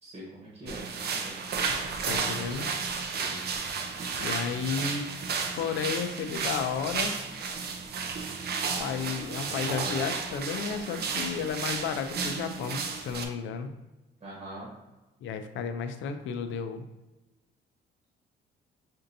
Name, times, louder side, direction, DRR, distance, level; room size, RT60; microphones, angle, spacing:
voice 1, 0.0-1.5 2.0-3.4 14.2-14.7, right 1 dB, 35° right, -5 dB, 1.1 m, -44 dB
sound 1, 0.7-13.2, right 5 dB, 55° right, 0.5 m, -33 dB
voice 2, 2.1-2.7 4.2-5.1 5.5-7.2 8.8-13.7 15.2-16.8, left 6 dB, 75° left, 8 dB, 0.4 m, -32 dB
4.3 x 2.6 x 2.6 m, 1.1 s
cardioid pair, 90°, 20 cm